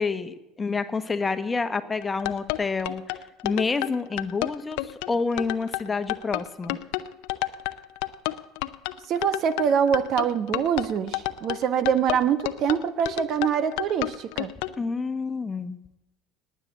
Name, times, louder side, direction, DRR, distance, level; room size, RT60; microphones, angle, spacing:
voice 1, 0.0-3.0 3.4-6.8 14.8-15.8, left 4 dB, 20° left, 9 dB, 1.2 m, -28 dB
sound 1, 2.0-14.8, left 18 dB, 70° left, 0.7 m, -30 dB
voice 2, 9.1-14.5, right 8 dB, 55° right, 12 dB, 1.1 m, -24 dB
19.0 x 7.8 x 8.0 m, 0.91 s
hypercardioid pair, 75°, 0 cm